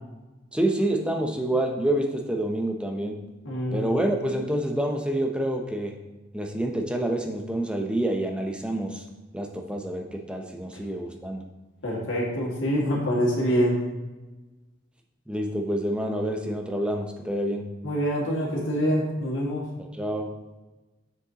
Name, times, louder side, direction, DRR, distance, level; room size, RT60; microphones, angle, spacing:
voice 1, 0.5-3.2 3.7-6.0 6.3-9.0 9.3-11.4 15.3-17.7 19.9-20.3, right 1 dB, 5° right, 2 dB, 0.5 m, -27 dB
voice 2, 3.5-3.8 11.8-13.8 17.8-19.7, equal, 75° left, -3 dB, 1.9 m, -25 dB
7.3 x 6.6 x 2.9 m, 1.2 s
head